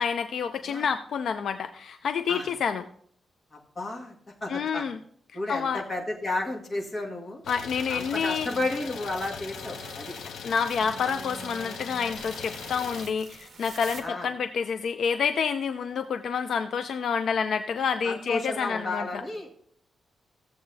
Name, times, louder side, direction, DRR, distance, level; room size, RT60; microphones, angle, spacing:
voice 1, 0.0-2.9 4.5-5.0 5.5-5.8 7.5-8.5 10.4-19.2, left 6 dB, 65° left, 9 dB, 0.4 m, -28 dB
voice 2, 3.5-4.2 4.4-4.8 5.3-7.4 7.9-10.1 14.0-14.3 18.0-19.5, left 2 dB, 30° left, -2 dB, 1.9 m, -32 dB
Idling, 7.4-13.1, left 6 dB, 90° left, 0.7 m, -40 dB
sound 1, 8.0-14.0, right 3 dB, 50° right, 1.5 m, -46 dB
15.0 x 7.7 x 2.7 m, 0.63 s
wide cardioid pair, 155°, 0 cm